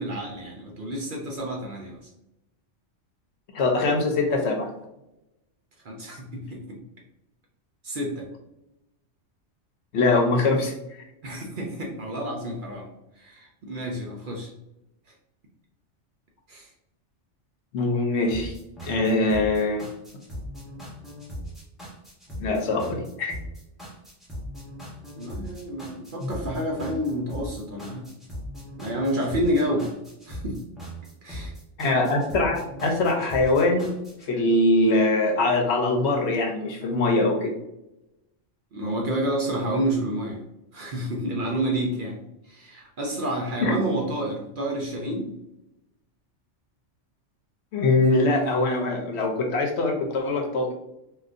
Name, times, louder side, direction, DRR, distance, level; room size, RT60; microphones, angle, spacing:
voice 1, 0.0-2.0 5.8-6.8 7.8-8.3 11.2-12.9 13.2-14.5 16.5-16.7 25.2-28.0 28.8-29.9 30.2-30.6 31.2-31.5 38.7-40.4 40.7-42.2 42.4-45.3 48.1-48.2, right 1 dB, 55° right, -1 dB, 0.7 m, -29 dB
voice 2, 3.5-4.7 9.9-10.7 17.7-18.5 18.8-19.8 22.4-23.3 26.2-26.3 31.8-33.9 34.3-37.5 43.6-43.7 47.7-50.7, left 2 dB, 70° left, 1 dB, 0.9 m, -22 dB
sound 1, 18.3-34.3, equal, ahead, 0.9 m, -39 dB
3.7 x 2.4 x 2.5 m, 0.87 s
omnidirectional pair, 1.2 m